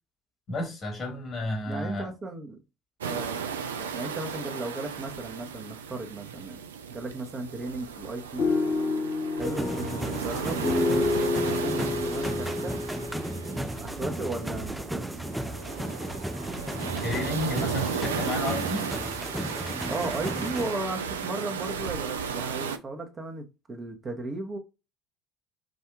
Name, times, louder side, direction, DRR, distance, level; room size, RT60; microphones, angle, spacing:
voice 1, 0.5-2.1 17.0-18.9, left 2 dB, 45° left, 1.7 m, -32 dB
voice 2, 1.6-2.6 3.0-6.6 6.9-8.5 9.3-11.3 11.6-12.8 13.8-15.0 19.9-24.6, right 2 dB, 30° right, 1.0 m, -36 dB
sound 1, 3.0-22.8, right 6 dB, 80° right, 0.4 m, -35 dB
sound 2, 8.4-14.4, left 3 dB, 60° left, 1.5 m, -29 dB
sound 3, 9.4-20.7, right 1 dB, 5° right, 0.4 m, -35 dB
4.9 x 2.7 x 2.3 m
figure-of-eight pair, 60°, 0 cm